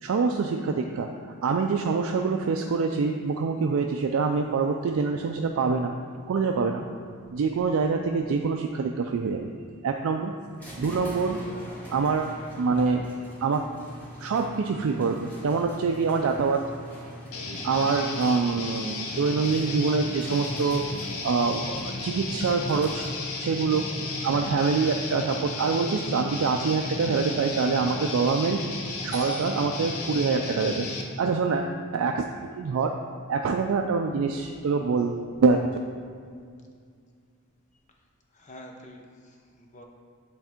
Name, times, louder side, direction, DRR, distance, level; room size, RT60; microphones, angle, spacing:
voice 1, 0.0-5.9 6.3-6.8 7.3-9.5 9.8-10.3 10.8-11.4 11.9-13.0 13.4-13.6 14.2-16.6 17.6-20.9 21.2-23.1 23.4-23.9 24.2-28.7 29.0-30.9 31.2-32.3 32.6-33.0 33.3-35.7, right 4 dB, 65° right, 3 dB, 0.3 m, -25 dB
sound 1, 10.6-23.4, equal, 10° left, 1.3 m, -43 dB
Guitar, 17.3-31.0, left 3 dB, 85° left, 0.8 m, -34 dB
voice 2, 28.7-29.1 34.2-34.7 35.2-35.4 38.3-39.8, left 1 dB, 35° left, 2 dB, 0.7 m, -48 dB
8.0 x 3.5 x 4.3 m, 2.2 s
head